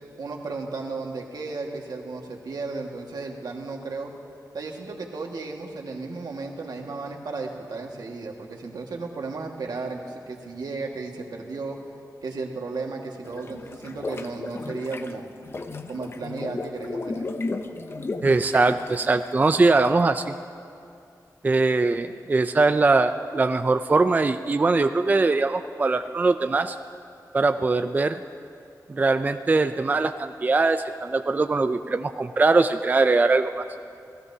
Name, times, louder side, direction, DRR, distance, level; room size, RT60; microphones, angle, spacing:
voice 1, 0.2-4.1 4.5-11.8 12.2-15.2 15.9-17.3, right 3 dB, 80° right, 1 dB, 1.7 m, -34 dB
sound 1, 13.2-20.0, left 3 dB, 35° left, 0.6 m, -35 dB
voice 2, 18.2-20.3 21.4-26.8 27.3-28.2 28.9-33.6, right 3 dB, 25° right, 8 dB, 0.3 m, -21 dB
29.0 x 18.0 x 2.8 m, 2.5 s
wide cardioid pair, 155°, 7 cm